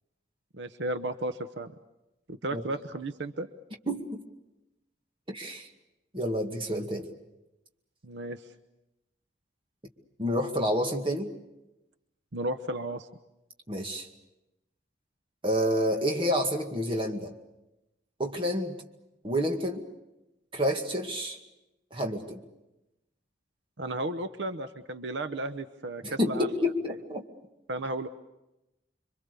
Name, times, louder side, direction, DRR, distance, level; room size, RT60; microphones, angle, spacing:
voice 1, 0.5-1.7 2.3-3.5 8.0-8.5 12.3-13.1 23.8-26.5 26.9-27.0 27.7-28.1, right 1 dB, 75° right, 10 dB, 0.9 m, -34 dB
voice 2, 3.9-4.2 5.3-5.7 6.1-7.1 10.2-11.3 13.7-14.1 15.4-17.3 18.2-18.8 19.2-19.9 20.5-21.4 21.9-22.4 26.0-27.2, equal, 25° right, 2 dB, 2.1 m, -29 dB
27.0 x 24.0 x 6.8 m, 0.96 s
head